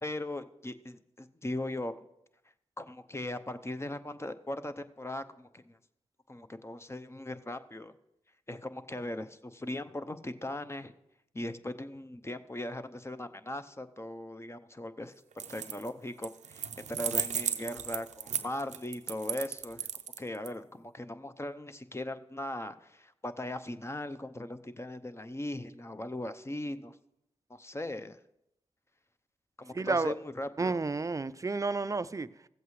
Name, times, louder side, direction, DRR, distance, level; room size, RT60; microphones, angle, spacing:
voice 1, 0.0-2.0 2.8-5.8 6.3-7.9 8.5-10.9 11.3-15.2 15.5-19.9 20.2-27.0 27.5-28.2 29.6-30.8, left 1 dB, 20° left, 0.7 m, -39 dB
sound 1, 15.3-15.9 16.2-20.5, right 9 dB, 85° right, 0.5 m, -35 dB
voice 2, 29.7-30.1 30.6-32.3, right 3 dB, 30° right, 0.4 m, -31 dB
15.0 x 7.9 x 3.2 m
cardioid pair, 45°, 12 cm